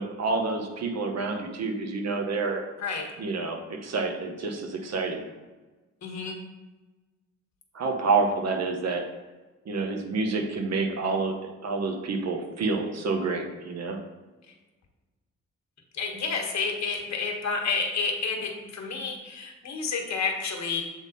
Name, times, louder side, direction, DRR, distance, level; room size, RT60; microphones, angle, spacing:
voice 1, 0.0-2.6 3.2-5.2 7.7-9.0 9.7-14.0, right 3 dB, 60° right, 3 dB, 1.1 m, -28 dB
voice 2, 6.0-6.4 16.0-20.8, left 4 dB, 60° left, 2 dB, 1.4 m, -30 dB
8.0 x 3.7 x 4.1 m, 1.2 s
cardioid pair, 95°, 30 cm